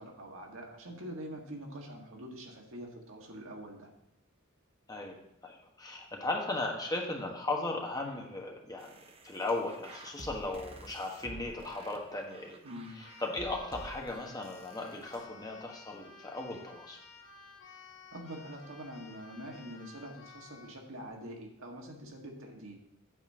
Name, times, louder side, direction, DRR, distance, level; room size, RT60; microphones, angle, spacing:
voice 1, 0.0-3.9 12.6-13.0 17.8-22.8, equal, 75° right, 1 dB, 1.8 m, -45 dB
voice 2, 5.4-8.9 9.2-12.6 13.0-17.0, left 2 dB, 20° left, 0 dB, 1.3 m, -37 dB
sound 1, 8.8-15.2, right 2 dB, 30° right, 0.8 m, -51 dB
Keyboard (musical), 13.0-20.8, left 5 dB, 60° left, 1.5 m, -54 dB
8.5 x 4.3 x 7.3 m, 0.82 s
head